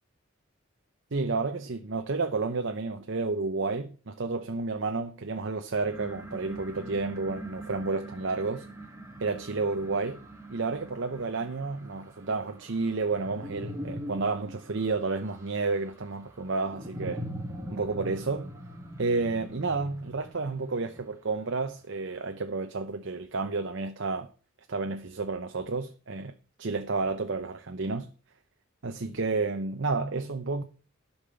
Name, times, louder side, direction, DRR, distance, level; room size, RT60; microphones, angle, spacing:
voice 1, 1.1-8.7 9.2-10.2 10.5-17.3 17.7-18.6 19.0-24.3 24.7-26.3 26.6-28.1 28.8-30.6, right 3 dB, 60° right, 0.8 m, -31 dB
sound 1, 5.9-21.4, equal, 15° right, 1.8 m, -42 dB
12.0 x 5.7 x 6.9 m
head